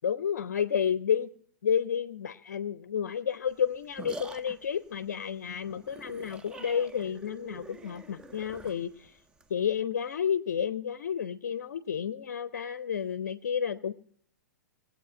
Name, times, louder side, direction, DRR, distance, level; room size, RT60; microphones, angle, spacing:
voice 1, 0.0-1.3 1.6-9.2 9.5-13.9, left 8 dB, 55° left, 14 dB, 0.6 m, -31 dB
sound 1, 3.5-9.5, right 3 dB, 10° right, 0.6 m, -46 dB
19.5 x 8.0 x 5.1 m, 0.63 s
figure-of-eight pair, 105°, 10 cm